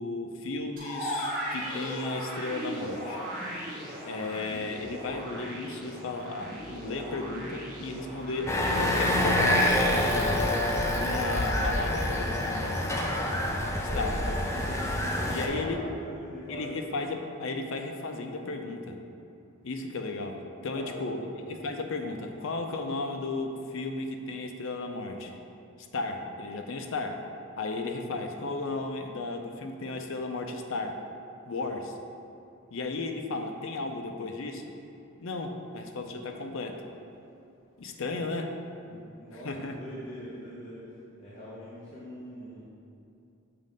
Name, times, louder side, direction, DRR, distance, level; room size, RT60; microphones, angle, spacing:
voice 1, 0.0-3.2 4.0-10.6 10.9-12.8 13.9-14.2 15.3-15.8 16.5-19.0 19.6-25.4 25.9-27.2 27.6-31.0 31.4-32.0 32.7-34.8 35.2-36.8 37.8-38.5 39.3-39.8, left 3 dB, 65° left, 4 dB, 0.5 m, -34 dB
sound 1, 0.8-9.1, equal, 40° right, 1.1 m, -37 dB
sound 2, 8.5-15.5, left 1 dB, 15° left, 0.4 m, -26 dB
voice 2, 13.8-17.0 20.7-21.3 38.8-40.8 41.2-42.6, equal, 30° left, -9 dB, 0.9 m, -42 dB
6.7 x 3.2 x 5.2 m, 2.6 s
head